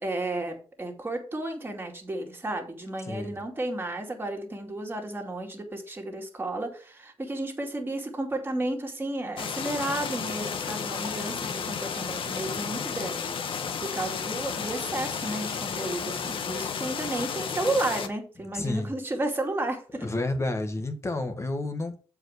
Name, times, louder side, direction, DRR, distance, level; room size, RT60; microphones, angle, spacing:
voice 1, 0.0-20.1, right 2 dB, 20° right, 2.3 m, -32 dB
voice 2, 3.0-3.4 18.5-18.9 20.0-22.0, left 2 dB, 30° left, 1.5 m, -30 dB
sound 1, 9.4-18.1, left 6 dB, 60° left, 1.1 m, -32 dB
7.5 x 4.9 x 6.4 m
cardioid pair, 100°, 10 cm